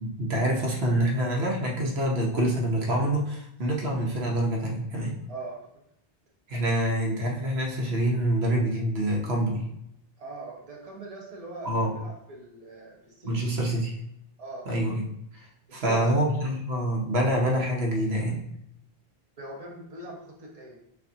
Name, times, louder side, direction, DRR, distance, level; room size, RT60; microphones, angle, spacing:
voice 1, 0.0-5.1 6.5-9.7 11.6-12.0 13.2-14.0 14.7-15.1 15.3-18.4, right 1 dB, 80° right, -1 dB, 1.1 m, -26 dB
voice 2, 5.3-5.6 10.2-13.5 14.4-14.7 15.7-16.2 19.4-20.8, right 2 dB, 40° right, -2 dB, 1.0 m, -41 dB
6.6 x 2.6 x 2.7 m, 0.79 s
omnidirectional pair, 1.0 m